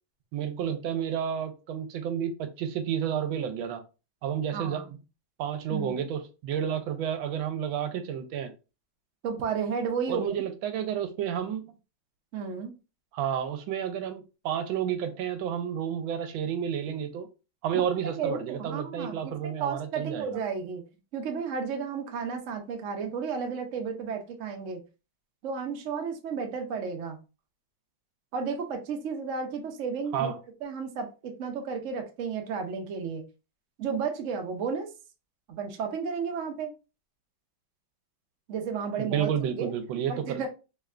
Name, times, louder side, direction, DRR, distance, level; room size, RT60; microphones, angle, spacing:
voice 1, 0.3-3.8 4.2-4.8 5.4-8.5 10.1-11.6 13.1-17.3 17.6-20.4 30.1-30.4 39.0-40.4, right 8 dB, 80° right, 1.4 m, -31 dB
voice 2, 4.5-4.8 5.7-6.0 9.2-10.3 12.3-12.7 18.0-20.8 21.1-24.8 25.4-27.2 28.3-33.2 33.8-34.9 35.5-36.7 38.5-39.7 40.1-40.5, right 5 dB, 65° right, 0.7 m, -33 dB
3.5 x 3.2 x 2.4 m
omnidirectional pair, 2.2 m